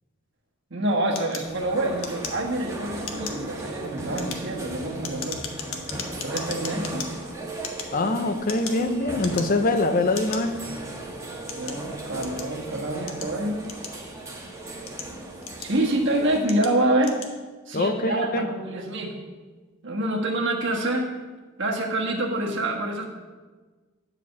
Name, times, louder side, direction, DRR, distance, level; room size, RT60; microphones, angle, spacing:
voice 1, 0.7-5.5 6.2-7.2 11.5-13.6 15.6-17.2 17.7-19.1 19.8-21.1 21.6-23.0, right 1 dB, 60° right, 0 dB, 1.5 m, -26 dB
sound 1, 1.2-2.7 3.0-3.5 4.0-7.1 7.6-8.9 9.2-9.7 10.1-10.4 11.1-12.6 13.1-14.2 14.7-15.9 16.4-16.7 17.0-17.3, left 6 dB, 80° left, 1.2 m, -37 dB
sound 2, 1.4-16.4, right 2 dB, 15° right, 1.3 m, -37 dB
voice 2, 7.9-10.7 17.7-18.5, left 2 dB, 40° left, 7 dB, 0.7 m, -24 dB
10.5 x 5.0 x 7.0 m, 1.3 s
head